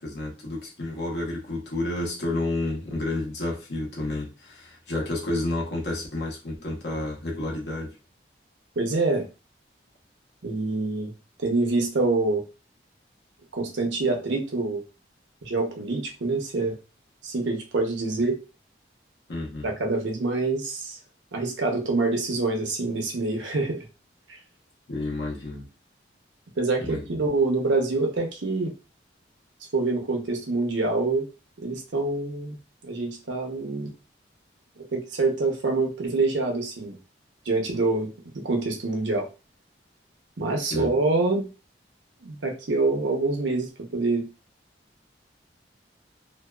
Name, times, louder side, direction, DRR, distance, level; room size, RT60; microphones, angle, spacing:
voice 1, 0.0-8.0 19.3-19.7 24.9-25.7 26.8-27.0 40.7-40.9, left 2 dB, 70° left, 0.9 m, -30 dB
voice 2, 8.8-9.3 10.4-11.1 11.4-12.4 13.5-14.8 15.4-16.8 17.2-18.4 19.6-21.0 21.3-23.9 24.3-24.4 26.6-28.7 29.7-31.3 31.6-32.6 32.8-33.9 34.9-37.0 37.5-39.3 40.4-41.5 42.2-44.3, right 3 dB, 85° right, 0.8 m, -26 dB
2.7 x 2.2 x 2.3 m
head